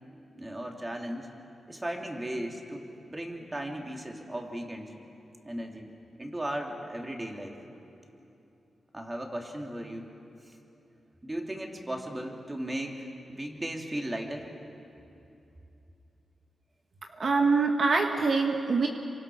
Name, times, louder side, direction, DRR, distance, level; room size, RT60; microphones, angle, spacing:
voice 1, 0.3-1.3 1.7-4.9 5.4-5.9 6.2-7.6 8.9-10.1 10.4-10.5 11.2-14.5, right 1 dB, 20° right, 1 dB, 3.3 m, -36 dB
voice 2, 17.2-18.9, right 4 dB, 60° right, 2 dB, 1.5 m, -24 dB
27.0 x 24.5 x 6.4 m, 2.8 s
cardioid pair, 70°, 0 cm